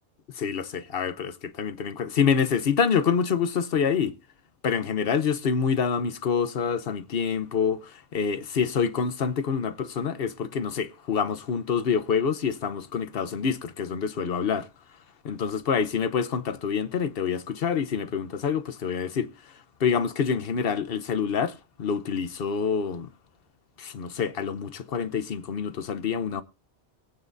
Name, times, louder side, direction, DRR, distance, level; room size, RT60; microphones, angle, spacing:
voice 1, 0.4-4.1 4.6-14.7 15.2-19.3 19.8-23.1 23.8-26.4, left 6 dB, 60° left, 1.0 m, -27 dB
22.5 x 8.7 x 2.6 m
omnidirectional pair, 1.1 m